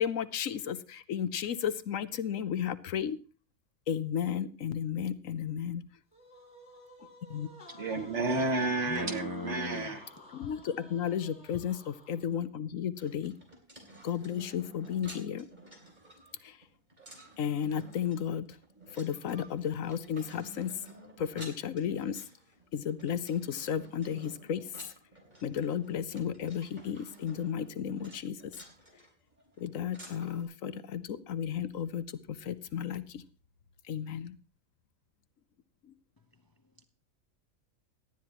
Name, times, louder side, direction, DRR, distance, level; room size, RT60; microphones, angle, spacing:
voice 1, 0.0-3.2 3.9-5.8 7.3-7.5 10.3-13.4 14.0-15.5 16.4-16.6 17.4-18.5 18.9-20.7 21.2-22.2 22.7-24.7 25.4-28.4 29.6-33.2 33.9-34.4, left 8 dB, 75° left, 14 dB, 1.2 m, -33 dB
sound 1, 6.1-12.5, left 2 dB, 55° left, 3.9 m, -53 dB
voice 2, 7.7-10.0, right 2 dB, 55° right, 4 dB, 2.3 m, -31 dB
voice 3, 8.9-10.3 36.3-36.4 36.8-36.9, left 2 dB, 20° left, 8 dB, 0.7 m, -40 dB
sound 2, 12.9-30.4, right 1 dB, 30° right, 3.4 m, -53 dB
18.0 x 12.5 x 3.0 m, 0.36 s
omnidirectional pair, 1.4 m